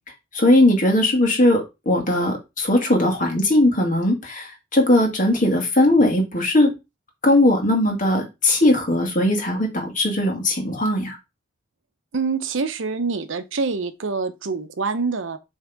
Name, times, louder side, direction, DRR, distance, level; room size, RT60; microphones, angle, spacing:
voice 1, 0.3-6.7 7.2-11.2, left 1 dB, 40° left, 1.9 m, -19 dB
voice 2, 12.1-15.4, right 4 dB, 70° right, 0.7 m, -25 dB
7.4 x 3.6 x 3.5 m
head